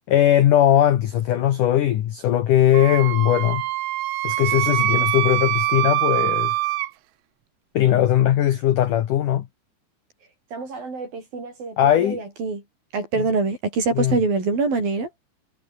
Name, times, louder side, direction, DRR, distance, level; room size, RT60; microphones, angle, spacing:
voice 1, 0.1-3.6 4.2-6.5 7.7-9.5 11.8-12.2 13.2-13.3 13.9-14.2, left 11 dB, 75° left, 1.9 m, -19 dB
Wind instrument woodwind instrument, 2.7-6.9, right 17 dB, 85° right, 3.6 m, -24 dB
voice 2, 10.5-12.6 12.9-15.1, right 4 dB, 45° right, 9.1 m, -25 dB
omnidirectional pair, 5.7 m